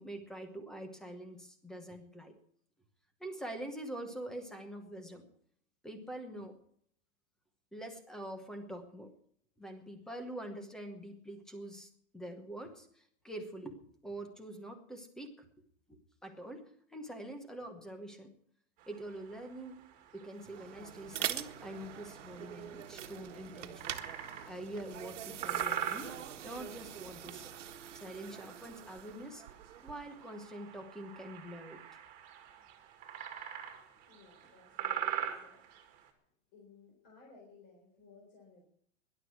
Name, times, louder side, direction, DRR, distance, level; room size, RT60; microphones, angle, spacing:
voice 1, 0.0-2.3 3.2-5.2 5.8-6.6 7.7-9.1 9.6-13.8 14.0-15.4 15.9-18.3 18.9-19.8 20.1-23.9 24.5-26.1 26.4-27.5 27.9-29.4 29.8-31.8, right 1 dB, ahead, 6 dB, 1.0 m, -45 dB
sound 1, 18.8-36.1, right 9 dB, 20° right, 2.2 m, -44 dB
sound 2, 20.3-30.2, right 10 dB, 70° right, 1.6 m, -44 dB
voice 2, 34.1-35.6 36.1-38.7, left 4 dB, 30° left, -1 dB, 4.2 m, -59 dB
18.5 x 11.5 x 4.7 m, 0.64 s
supercardioid pair, 175°, 38 cm